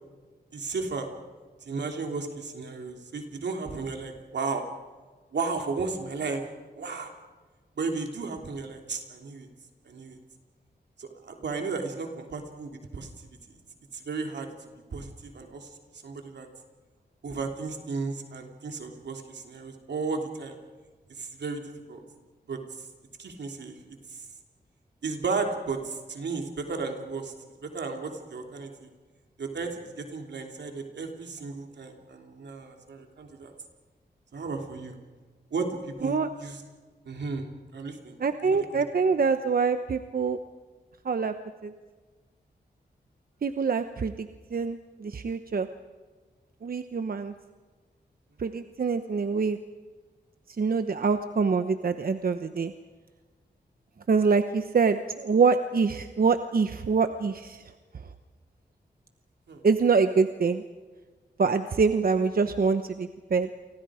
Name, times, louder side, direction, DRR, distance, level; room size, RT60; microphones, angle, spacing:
voice 1, 0.5-1.1 1.6-4.6 5.3-6.4 6.8-7.1 7.8-9.5 9.8-10.2 11.0-13.1 13.9-14.5 14.9-15.7 16.0-16.5 17.2-20.6 21.2-22.0 22.5-22.6 23.2-24.0 25.0-27.3 27.6-28.9 29.4-33.5 34.3-35.0 35.5-36.6 37.0-38.2 38.4-38.8 48.5-48.6 59.5-59.6, right 4 dB, 85° right, 3 dB, 3.1 m, -34 dB
voice 2, 38.2-40.4 41.0-41.3 41.6-41.7 43.4-45.7 46.6-47.3 48.4-49.6 50.6-52.7 54.1-57.6 59.6-60.6 61.4-63.5, right 5 dB, 55° right, 9 dB, 1.0 m, -25 dB
29.5 x 24.5 x 5.0 m, 1.4 s
wide cardioid pair, 80°, 17 cm